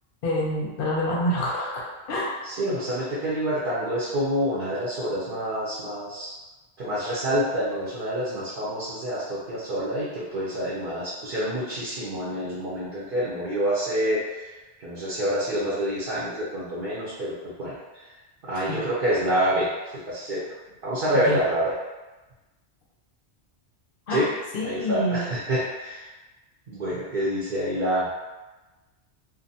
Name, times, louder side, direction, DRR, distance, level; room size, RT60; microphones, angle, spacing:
voice 1, 0.2-2.3 18.7-18.8 21.1-21.4 24.1-24.2 24.5-25.2, left 1 dB, 60° left, -4 dB, 0.7 m, -27 dB
voice 2, 2.4-6.3 6.8-14.5 14.8-17.8 18.4-19.7 20.1-20.4 20.8-21.7 24.1-24.3 24.6-26.0 26.7-28.1, equal, 55° right, -9 dB, 0.8 m, -27 dB
2.6 x 2.2 x 2.7 m, 1.1 s
omnidirectional pair, 1.2 m